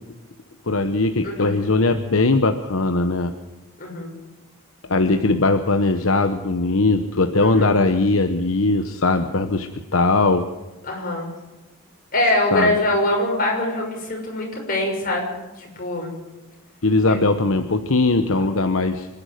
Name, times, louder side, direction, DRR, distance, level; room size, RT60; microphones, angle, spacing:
voice 1, 0.7-3.3 4.9-10.5 12.5-12.8 16.8-19.1, left 3 dB, 70° left, 7 dB, 1.0 m, -20 dB
voice 2, 1.2-1.5 3.8-4.1 7.4-7.7 10.8-11.3 12.1-16.1 17.1-17.2, left 1 dB, 40° left, 0 dB, 6.3 m, -23 dB
25.5 x 11.0 x 9.3 m, 1.1 s
head